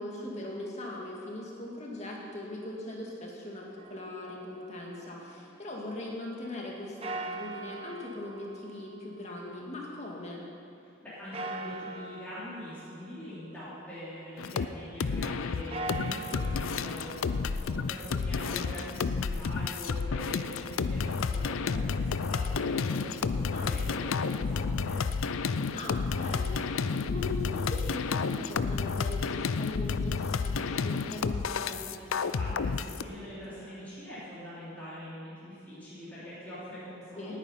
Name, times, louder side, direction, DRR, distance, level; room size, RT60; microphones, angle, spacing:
voice 1, 0.0-10.4 18.4-18.6 23.5-23.8 25.7-32.3 37.2-37.4, left 1 dB, 35° left, -2 dB, 1.9 m, -40 dB
sound 1, 3.8-5.9 7.0-10.4 11.3-14.3 15.5-19.5, right 2 dB, 30° right, 1.0 m, -43 dB
voice 2, 10.8-25.0 32.3-37.4, left 1 dB, 10° left, -12 dB, 3.6 m, -43 dB
sound 2, 14.4-14.7 15.0-33.0, left 5 dB, 80° left, 0.5 m, -31 dB
18.5 x 9.4 x 5.6 m, 2.5 s
head